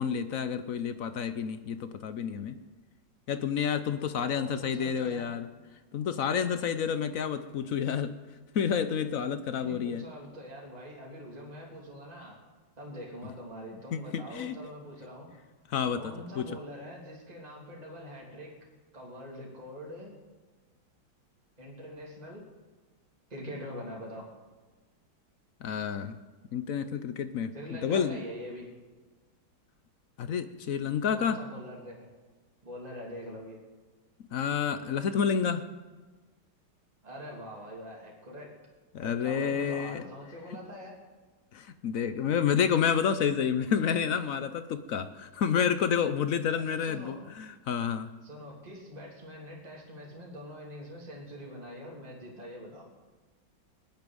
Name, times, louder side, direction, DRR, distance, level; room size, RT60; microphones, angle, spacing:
voice 1, 0.0-2.6 3.3-5.5 5.9-8.1 8.5-10.0 13.9-14.6 15.7-16.5 25.6-26.2 26.5-27.5 27.8-28.2 30.2-31.4 34.3-35.6 38.9-40.0 41.5-48.1, left 7 dB, 65° left, 11 dB, 0.8 m, -29 dB
voice 2, 4.3-5.3 9.5-12.4 12.8-15.3 15.9-18.6 18.9-20.2 21.6-22.4 23.3-24.3 27.5-28.7 31.1-32.1 32.6-33.6 37.0-38.5 39.0-40.9 46.7-47.2 48.2-52.9, equal, 20° right, -2 dB, 3.0 m, -44 dB
20.5 x 7.2 x 9.5 m, 1.3 s
omnidirectional pair, 2.2 m